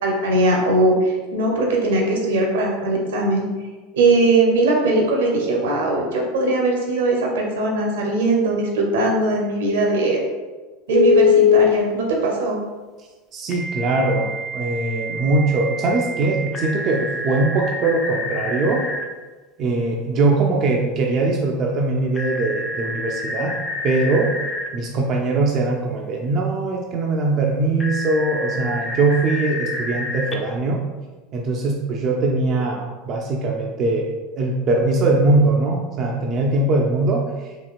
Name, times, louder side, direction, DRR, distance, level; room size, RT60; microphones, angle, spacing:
voice 1, 0.0-3.5 3.9-10.2 10.9-12.6, right 2 dB, 65° right, -1 dB, 0.7 m, -20 dB
Telephone, 10.9-11.7 13.5-19.0 22.1-24.7 27.8-30.3, left 5 dB, 20° left, 0.5 m, -24 dB
voice 2, 13.3-18.9 19.6-23.6 23.8-24.4 24.7-30.8 31.3-37.3, right 2 dB, 40° right, 0 dB, 0.4 m, -21 dB
4.1 x 2.9 x 2.3 m, 1.3 s
figure-of-eight pair, 75°, 0 cm